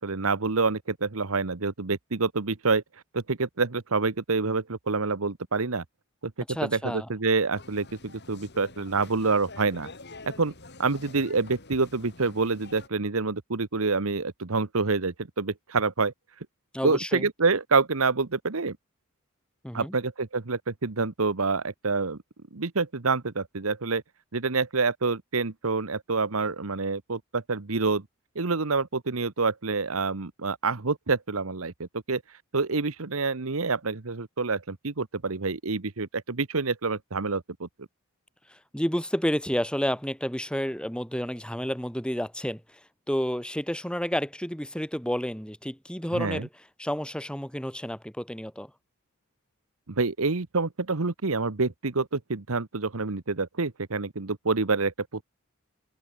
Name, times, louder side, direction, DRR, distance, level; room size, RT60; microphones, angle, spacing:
voice 1, 0.0-2.8 3.1-5.8 6.2-6.3 6.6-9.9 10.3-10.5 10.8-16.1 16.8-18.8 19.7-22.2 22.5-24.0 24.3-28.0 28.3-32.2 32.5-37.9 46.1-46.4 49.9-54.9, right 4 dB, 75° right, 1.2 m, -27 dB
voice 2, 6.5-7.1 16.7-17.3 19.6-19.9 38.5-42.8 43.1-46.5 46.8-48.7, equal, 5° left, 3.9 m, -30 dB
sound 1, 7.5-12.9, left 3 dB, 50° left, 6.9 m, -47 dB
open air
head